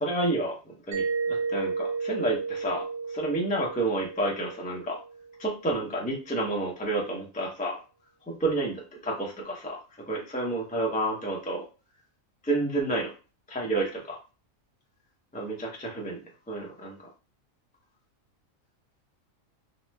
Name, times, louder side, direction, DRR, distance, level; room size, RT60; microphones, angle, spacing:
voice 1, 0.0-2.8 3.1-5.0 5.4-7.8 8.3-9.8 10.1-11.6 12.4-13.1 13.5-14.2 15.3-16.2 16.5-17.0, right 2 dB, 10° left, -2 dB, 0.4 m, -30 dB
Mallet percussion, 0.9-5.5, right 4 dB, 85° right, 1.3 m, -33 dB
3.0 x 2.0 x 3.1 m, 0.33 s
omnidirectional pair, 1.4 m